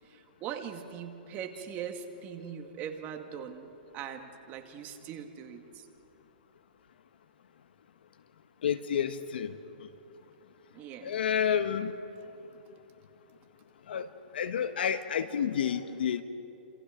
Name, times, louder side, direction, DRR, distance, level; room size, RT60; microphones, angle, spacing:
voice 1, 0.0-5.9 10.7-11.2, right 8 dB, 30° right, 5 dB, 2.0 m, -41 dB
voice 2, 8.6-9.5 11.0-11.9 13.9-14.1 14.3-16.2, left 8 dB, 80° left, 10 dB, 1.4 m, -29 dB
29.0 x 27.5 x 5.2 m, 2.9 s
hypercardioid pair, 140°, 5 cm